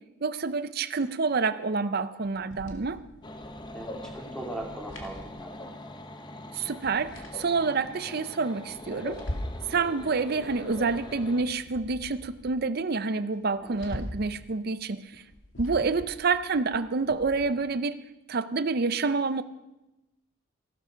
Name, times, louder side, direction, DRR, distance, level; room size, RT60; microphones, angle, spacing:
voice 1, 0.2-3.0 6.5-9.2 9.7-15.1 15.6-18.0 18.3-19.4, right 4 dB, 50° right, 13 dB, 0.6 m, -28 dB
sound 1, 2.2-5.9 6.2-6.3 6.6-7.9 8.4-9.7 10.0-12.6 12.9-13.0 13.3-14.4 15.0-17.5, left 1 dB, 70° left, 2.4 m, -42 dB
sound 2, 3.2-11.4, left 1 dB, 20° left, 0.8 m, -42 dB
voice 2, 3.7-5.7 7.7-7.8 13.6-13.8, right 1 dB, 5° left, -1 dB, 2.7 m, -39 dB
15.5 x 12.5 x 5.1 m, 0.96 s
head